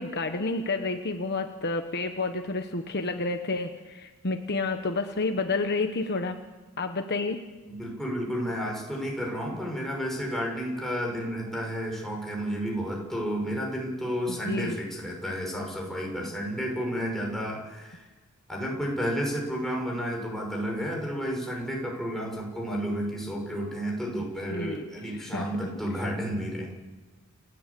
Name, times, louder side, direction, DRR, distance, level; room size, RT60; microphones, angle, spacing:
voice 1, 0.0-6.4 6.8-7.4 14.3-14.8 24.5-25.5, left 3 dB, 50° left, 6 dB, 1.3 m, -30 dB
voice 2, 7.7-18.1 18.5-26.7, equal, ahead, -1 dB, 6.3 m, -31 dB
29.5 x 13.0 x 8.5 m, 1.3 s
head